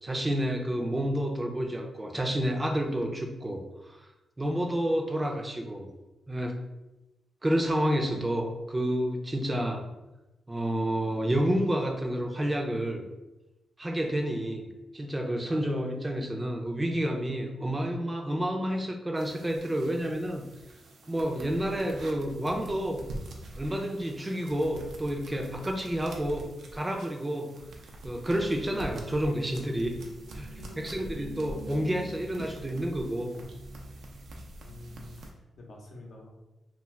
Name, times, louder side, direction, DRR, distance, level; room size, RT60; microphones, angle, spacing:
voice 1, 0.0-4.0 4.4-5.9 6.3-6.6 7.4-9.8 10.5-13.0 13.8-14.7 14.9-20.5 21.1-23.0 23.5-27.5 28.0-30.0 30.3-33.3, equal, 20° right, 2 dB, 0.5 m, -29 dB
sound 1, 19.2-35.3, right 1 dB, 75° right, 0.5 m, -45 dB
voice 2, 30.4-31.1 34.6-36.3, left 2 dB, 70° left, -2 dB, 0.7 m, -48 dB
2.4 x 2.4 x 3.2 m, 1.0 s
supercardioid pair, 55°, 0 cm